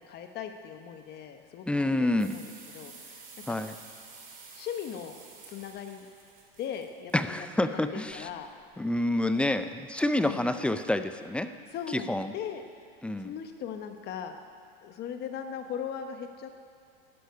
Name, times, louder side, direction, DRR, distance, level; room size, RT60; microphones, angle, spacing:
voice 1, 0.1-3.6 4.5-5.2 5.4-6.1 6.6-8.5 10.2-10.5 11.6-12.6 13.2-14.4 14.8-16.5, left 8 dB, 35° left, 6 dB, 1.0 m, -39 dB
voice 2, 1.7-2.4 3.5-3.7 7.1-8.3 8.8-11.5 12.1-12.3 13.0-13.3, left 1 dB, 5° left, 10 dB, 0.4 m, -28 dB
sound 1, 2.2-7.2 8.1-8.8 10.4-10.5 11.0-11.4 11.7-12.0 12.4-12.5 12.8-12.9 13.4-13.5 14.0-14.2, right 4 dB, 25° right, 3.4 m, -50 dB
12.0 x 12.0 x 9.3 m, 2.5 s
supercardioid pair, 130°, 29 cm